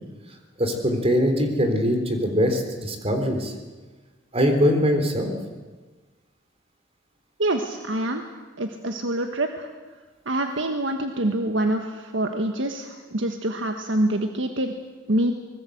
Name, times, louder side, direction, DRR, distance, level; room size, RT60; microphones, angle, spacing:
voice 1, 0.6-3.5 4.3-5.3, equal, 35° right, 5 dB, 3.7 m, -22 dB
voice 2, 7.4-8.2 8.6-9.7 10.2-14.7 15.1-15.3, right 1 dB, 85° right, 5 dB, 1.5 m, -25 dB
24.5 x 21.0 x 8.0 m, 1.3 s
head